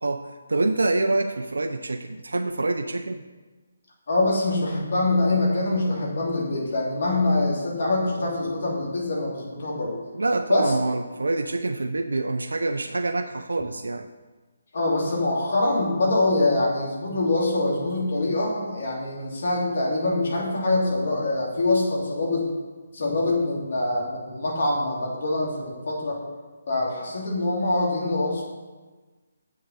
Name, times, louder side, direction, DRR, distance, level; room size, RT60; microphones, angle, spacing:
voice 1, 0.0-3.2 10.1-14.1, right 2 dB, 75° right, 6 dB, 0.4 m, -26 dB
voice 2, 4.1-10.0 10.5-10.7 14.7-22.5 22.9-26.2 26.7-28.4, left 2 dB, 55° left, -3 dB, 2.8 m, -24 dB
7.7 x 6.5 x 5.7 m, 1.3 s
figure-of-eight pair, 145°, 0 cm